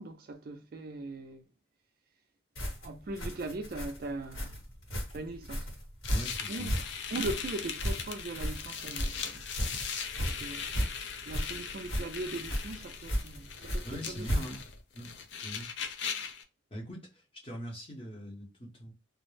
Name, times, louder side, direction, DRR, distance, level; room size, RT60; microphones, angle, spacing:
voice 1, 0.0-1.5 2.8-4.6 5.1-5.7 6.5-6.7 7.1-9.9 10.2-10.7 11.3-14.4, right 2 dB, 45° right, 0.3 m, -40 dB
sound 1, 2.6-14.8, equal, 80° left, 1.3 m, -35 dB
sound 2, 6.0-16.4, left 7 dB, 60° left, 0.4 m, -39 dB
voice 2, 6.1-6.7 13.8-14.6 14.9-15.1 15.4-15.7 16.7-18.9, equal, 25° left, 0.8 m, -42 dB
2.3 x 2.0 x 3.1 m
head